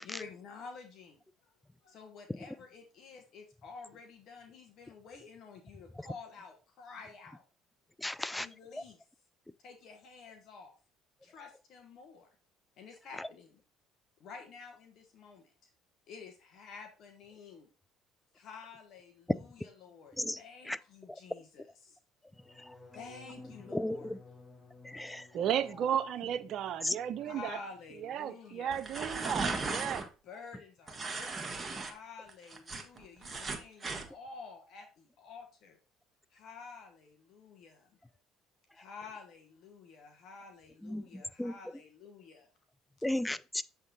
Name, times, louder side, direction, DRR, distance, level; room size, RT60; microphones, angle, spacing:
voice 1, 0.0-1.5 1.8-7.4 8.3-9.0 9.6-10.7 11.2-12.4 12.8-13.6 14.2-15.7 16.1-17.7 18.3-22.0 22.9-24.4 25.7-25.9 27.2-28.8 30.2-35.8 36.3-37.9 38.7-42.5 43.0-43.1, left 5 dB, 60° left, 1.1 m, -50 dB
voice 2, 8.0-8.5 20.2-20.4 20.7-20.8 23.7-24.0 24.9-25.2 26.8-26.9 40.8-41.1 41.4-41.5 43.0-43.6, left 1 dB, 10° left, 0.4 m, -34 dB
sound 1, 22.3-28.2 28.5-29.0 29.3-29.7, left 3 dB, 40° left, 1.6 m, -57 dB
voice 3, 25.3-27.6 28.0-30.0, right 9 dB, 60° right, 0.5 m, -34 dB
sound 2, 28.7-30.1 30.9-31.9 32.3-34.1, right 3 dB, 30° right, 1.2 m, -36 dB
7.2 x 3.6 x 4.0 m
hypercardioid pair, 65°, 0 cm